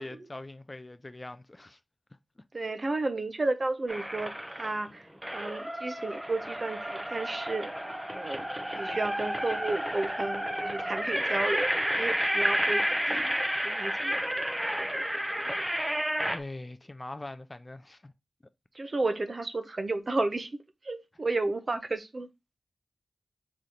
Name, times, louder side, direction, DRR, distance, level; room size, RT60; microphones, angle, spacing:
voice 1, 0.0-1.8 16.3-18.1, left 2 dB, 25° left, 0.3 m, -42 dB
voice 2, 2.5-7.7 8.1-8.4 8.7-14.4 14.8-15.0 18.7-20.5 20.8-22.3, right 2 dB, 45° right, 0.7 m, -33 dB
sound 1, 3.9-4.8 5.2-16.4, equal, 10° right, 0.7 m, -31 dB
4.3 x 3.2 x 3.8 m
wide cardioid pair, 65°, 0 cm